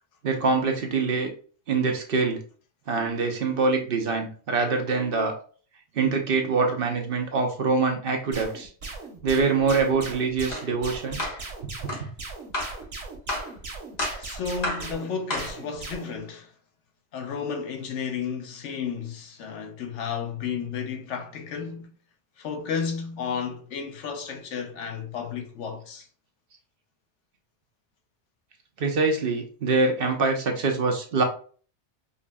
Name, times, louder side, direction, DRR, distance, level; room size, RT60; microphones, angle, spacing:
voice 1, 0.2-1.3 1.7-2.4 2.9-5.4 5.9-8.7 9.2-11.2 11.6-12.1 28.8-31.2, right 4 dB, 55° right, 0.9 m, -24 dB
sound 1, 8.3-16.2, right 3 dB, 90° right, 1.4 m, -38 dB
sound 2, 10.5-10.7 11.2-11.4 11.9-12.1 12.5-12.8 13.3-13.5 14.0-14.2 14.6-14.9 15.3-15.6, left 1 dB, 40° left, 1.1 m, -30 dB
voice 2, 14.2-16.5 17.1-21.9 22.4-26.1, left 6 dB, 80° left, 1.0 m, -32 dB
5.2 x 2.5 x 2.2 m
omnidirectional pair, 1.2 m